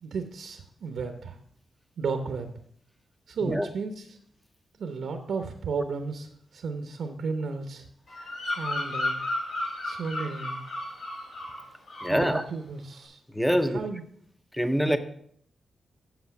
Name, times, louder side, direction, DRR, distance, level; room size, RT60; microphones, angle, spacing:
voice 1, 0.0-1.4 2.0-2.5 3.3-4.2 4.8-7.8 8.6-9.2 9.8-10.6 12.0-13.2 13.7-14.0 14.9-15.0, right 4 dB, 75° right, 6 dB, 0.9 m, -33 dB
Bird vocalization bird call bird song, 8.1-11.6 11.9-12.3, left 1 dB, 85° left, 4.0 m, -33 dB
voice 2, 12.0-12.4 13.3-13.9 14.5-15.0, equal, 5° left, 10 dB, 0.6 m, -24 dB
8.0 x 7.4 x 5.8 m, 0.67 s
wide cardioid pair, 130°, 0 cm